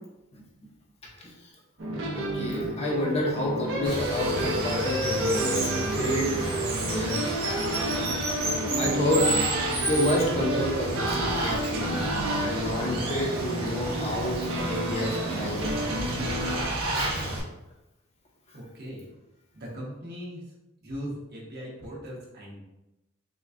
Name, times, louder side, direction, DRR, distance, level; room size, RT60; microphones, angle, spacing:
sound 1, 1.8-16.6, right 1 dB, 65° right, 0.8 m, -31 dB
voice 1, 2.1-7.8 8.4-8.5 8.7-9.4 9.8-12.0 12.4-14.4 14.7-15.6 17.0-17.3, left 1 dB, 30° left, -2 dB, 0.7 m, -29 dB
Water, 3.8-17.4, right 2 dB, 85° right, 1.1 m, -31 dB
voice 2, 18.5-19.1 19.5-20.5 20.8-22.6, equal, 50° right, -4 dB, 1.2 m, -39 dB
6.3 x 2.3 x 2.5 m, 0.95 s
head